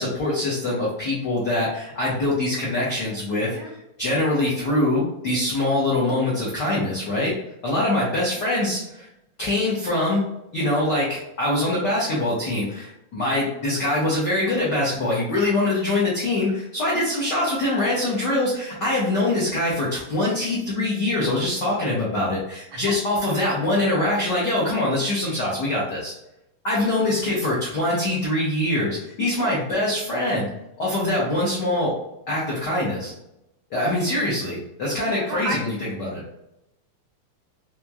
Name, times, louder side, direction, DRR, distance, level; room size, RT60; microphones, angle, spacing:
voice 1, 0.0-3.5 4.0-7.3 7.6-9.1 9.4-10.2 10.5-26.1 26.6-30.5 30.8-31.9 32.3-33.1 33.7-35.7 36.0-36.2, left 1 dB, 75° left, -6 dB, 0.9 m, -23 dB
voice 2, 3.4-3.8 13.8-13.9 16.9-17.1 22.7-22.9 35.1-35.6, right 3 dB, 85° right, 1 dB, 1.5 m, -33 dB
4.9 x 3.0 x 2.3 m, 0.86 s
omnidirectional pair, 3.6 m